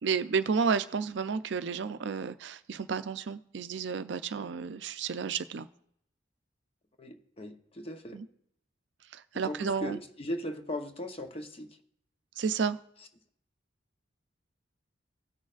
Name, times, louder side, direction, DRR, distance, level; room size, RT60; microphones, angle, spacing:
voice 1, 0.0-5.7 8.1-8.3 9.1-10.0 12.4-12.8, right 5 dB, 65° right, 12 dB, 0.4 m, -31 dB
voice 2, 7.0-8.2 9.4-11.8, left 1 dB, 30° left, 6 dB, 0.8 m, -38 dB
16.5 x 6.3 x 2.4 m, 0.71 s
head